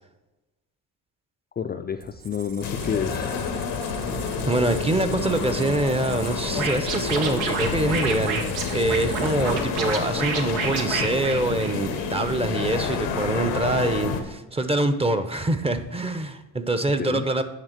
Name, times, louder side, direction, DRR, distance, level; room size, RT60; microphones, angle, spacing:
voice 1, 1.6-3.3 17.0-17.3, left 7 dB, 25° left, 5 dB, 0.4 m, -29 dB
Squeak, 2.0-9.9, right 6 dB, 65° right, 1.0 m, -38 dB
sound 1, 2.6-14.2, left 6 dB, 90° left, 1.1 m, -29 dB
voice 2, 4.5-8.4 8.7-17.4, right 2 dB, 15° right, 10 dB, 0.7 m, -25 dB
Scratching (performance technique), 6.5-12.0, right 5 dB, 85° right, 1.2 m, -29 dB
8.9 x 3.6 x 6.6 m, 1.1 s
supercardioid pair, 85°, 37 cm